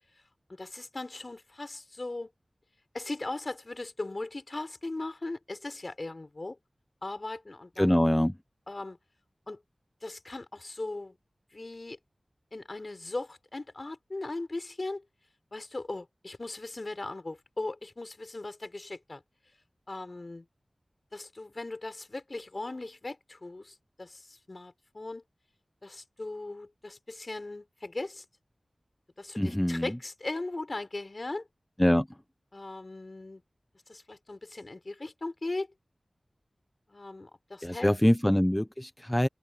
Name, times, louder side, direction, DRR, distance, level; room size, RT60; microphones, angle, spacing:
voice 1, 0.6-2.3 2.9-6.6 7.0-8.0 8.7-9.0 9.5-9.6 10.0-11.2 11.5-12.0 12.5-15.0 15.5-19.2 19.9-20.5 21.1-25.2 25.8-28.2 29.2-31.4 32.5-33.4 33.9-35.7 36.9-37.9, left 2 dB, 50° left, 4.6 m, -38 dB
voice 2, 7.8-8.4 29.4-30.0 31.8-32.1 37.6-39.3, equal, 10° left, 0.9 m, -24 dB
wide cardioid pair, 45°, 0 cm